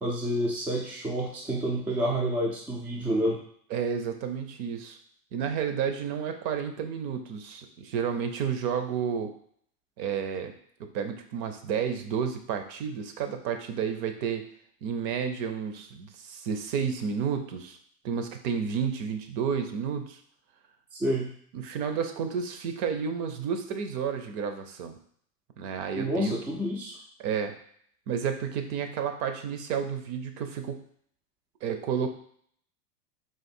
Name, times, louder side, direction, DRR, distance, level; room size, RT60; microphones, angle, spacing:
voice 1, 0.0-3.4 20.9-21.3 26.0-27.0, equal, 5° right, -2 dB, 0.3 m, -29 dB
voice 2, 3.7-5.0 5.3-9.3 10.0-10.5 10.8-14.4 14.8-17.8 18.0-20.2 21.5-25.0 25.6-26.3 27.2-27.5 28.1-30.8 31.6-32.1, right 7 dB, 45° right, 7 dB, 0.7 m, -31 dB
3.8 x 2.6 x 4.3 m, 0.62 s
hypercardioid pair, 115°, 48 cm